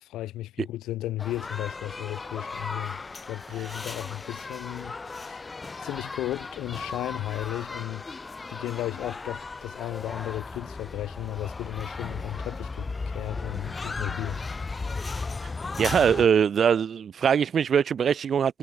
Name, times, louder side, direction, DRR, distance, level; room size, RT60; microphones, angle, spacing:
voice 1, 0.0-3.0 3.3-5.5 5.8-8.0 8.5-14.5, left 15 dB, 90° left, 0.9 m, -34 dB
sound 1, 1.2-16.3, left 3 dB, 25° left, 0.8 m, -36 dB
voice 2, 15.8-18.6, right 7 dB, 55° right, 0.5 m, -22 dB
cardioid pair, 90°, 0 cm